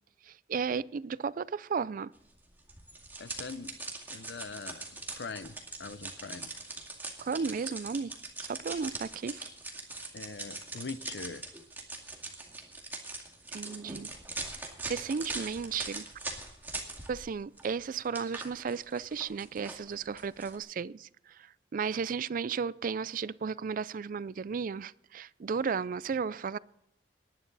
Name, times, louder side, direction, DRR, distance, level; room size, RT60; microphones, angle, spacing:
voice 1, 0.5-2.1 7.2-8.1 8.4-9.5 13.5-14.1 14.9-16.0 17.1-21.1 21.7-26.6, right 5 dB, 50° right, 0.4 m, -34 dB
sound 1, 2.7-17.3 17.6-20.6, right 2 dB, 10° right, 2.2 m, -42 dB
voice 2, 3.2-3.7 4.1-6.5 10.1-11.4, left 4 dB, 70° left, 0.7 m, -42 dB
19.5 x 11.0 x 4.1 m
head